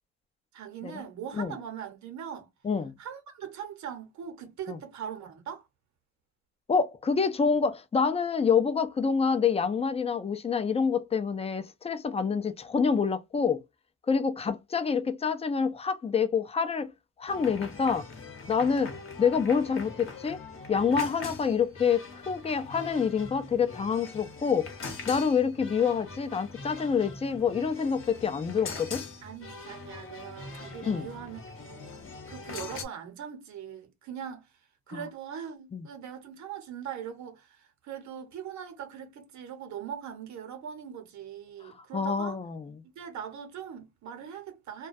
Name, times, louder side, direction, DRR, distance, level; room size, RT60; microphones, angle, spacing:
voice 1, 0.5-2.5 3.0-5.7 29.2-42.4 42.9-44.9, right 8 dB, 70° right, 0.8 m, -41 dB
voice 2, 6.7-13.6 14.1-16.9 17.2-18.1 18.5-18.9 19.2-20.4 20.7-24.7 25.1-29.0 30.8-31.1 34.9-35.0 35.7-35.8 41.9-42.6, left 6 dB, 20° left, 0.4 m, -27 dB
sound 1, 17.3-32.9, left 4 dB, 45° left, 0.8 m, -42 dB
2.2 x 2.2 x 2.5 m
cardioid pair, 90°, 30 cm